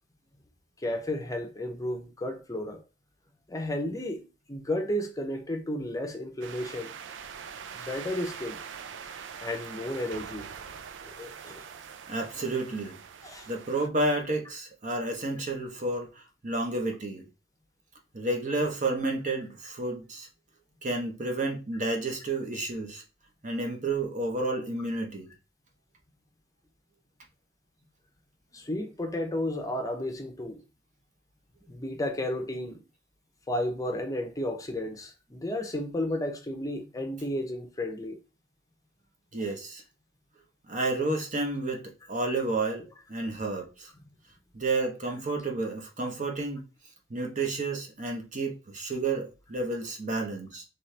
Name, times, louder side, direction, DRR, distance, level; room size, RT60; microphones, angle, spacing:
voice 1, 0.8-2.8 3.5-6.9 7.8-8.6 9.4-10.5 11.0-11.7 13.2-13.5 28.5-30.5 31.7-32.8 33.5-38.2, left 1 dB, 20° left, 0.7 m, -33 dB
sound 1, 6.4-13.9, right 7 dB, 70° right, 0.4 m, -43 dB
voice 2, 12.1-13.0 13.5-17.3 18.1-20.3 20.8-23.0 23.4-25.3 39.3-39.8 40.7-43.9 44.5-46.6 47.1-50.6, right 2 dB, 45° right, 0.9 m, -31 dB
4.1 x 3.3 x 3.3 m
head